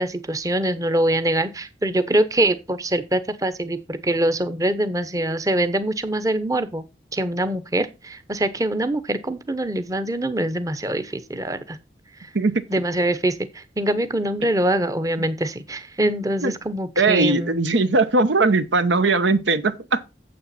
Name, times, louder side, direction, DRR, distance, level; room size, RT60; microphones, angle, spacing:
voice 1, 0.0-6.8 7.1-11.8 12.7-17.6, right 1 dB, 20° right, 0.7 m, -24 dB
voice 2, 17.0-20.1, right 3 dB, 85° right, 0.9 m, -19 dB
8.7 x 7.5 x 4.1 m
head